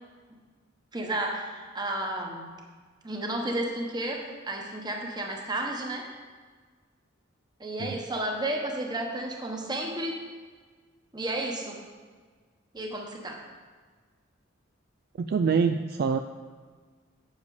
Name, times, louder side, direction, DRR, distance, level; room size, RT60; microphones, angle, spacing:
voice 1, 0.9-2.5 3.0-6.1 7.6-10.2 11.1-11.8 12.7-13.4, right 1 dB, 20° right, 1 dB, 1.2 m, -32 dB
voice 2, 15.2-16.2, right 5 dB, 50° right, 6 dB, 0.3 m, -25 dB
8.1 x 7.4 x 4.9 m, 1.5 s
head